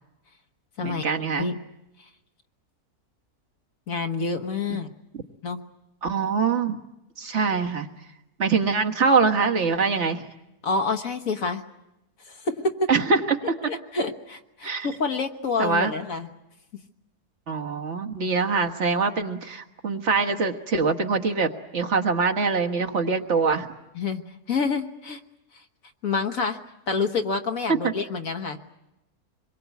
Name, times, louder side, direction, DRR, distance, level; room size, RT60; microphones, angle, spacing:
voice 1, 0.8-1.5 6.0-6.8 7.2-7.9 8.4-10.2 12.9-13.5 14.6-14.9 15.6-15.9 17.5-23.7 27.7-27.9, right 4 dB, 50° right, 4 dB, 1.6 m, -24 dB
voice 2, 3.9-4.9 5.4-5.6 10.6-11.6 12.2-12.7 13.7-16.3 23.9-25.2 26.0-26.6 26.9-28.6, left 4 dB, 60° left, 7 dB, 1.6 m, -27 dB
26.0 x 22.0 x 8.3 m, 0.94 s
omnidirectional pair, 1.6 m